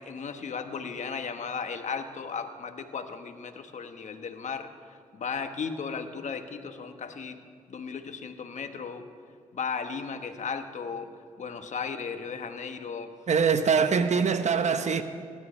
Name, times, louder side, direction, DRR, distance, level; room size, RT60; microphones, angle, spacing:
voice 1, 0.0-4.7 5.1-7.4 7.7-9.1 9.5-13.1, left 5 dB, 60° left, 1.3 m, -35 dB
voice 2, 13.3-15.0, right 6 dB, 55° right, 1.0 m, -23 dB
26.5 x 12.5 x 3.2 m
supercardioid pair, 50°, 14 cm